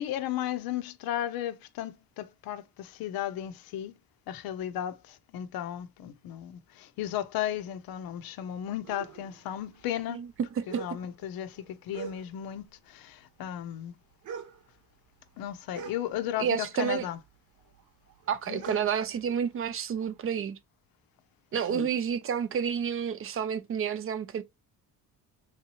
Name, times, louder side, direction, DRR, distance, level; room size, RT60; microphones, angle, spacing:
voice 1, 0.0-4.0 4.3-10.2 10.7-13.9 15.4-17.2 18.5-18.8 21.7-21.9, left 11 dB, 75° left, 0.6 m, -35 dB
sound 1, 8.8-12.7 12.9-16.7 17.0-20.2, right 7 dB, 55° right, 0.8 m, -45 dB
voice 2, 16.4-17.1 18.3-20.6 21.5-24.4, right 7 dB, 40° right, 0.4 m, -30 dB
3.5 x 2.8 x 2.8 m
cardioid pair, 130°, 36 cm